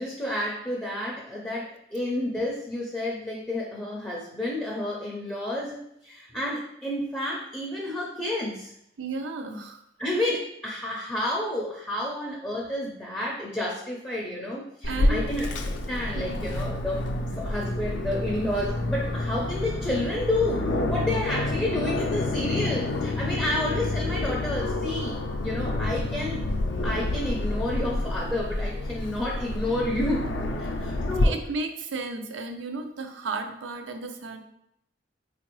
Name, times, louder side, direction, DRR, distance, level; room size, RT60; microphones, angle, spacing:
voice 1, 0.0-8.7 10.0-15.5 15.9-17.1 17.3-26.4 26.8-30.3 30.6-31.3, left 1 dB, 10° left, -3 dB, 0.4 m, -30 dB
voice 2, 9.0-9.8 14.9-15.3 16.1-16.5 31.2-34.4, right 3 dB, 85° right, 6 dB, 0.5 m, -34 dB
Aircraft, 14.8-31.2, left 2 dB, 70° left, 0.4 m, -29 dB
3.8 x 2.4 x 3.0 m, 0.76 s
head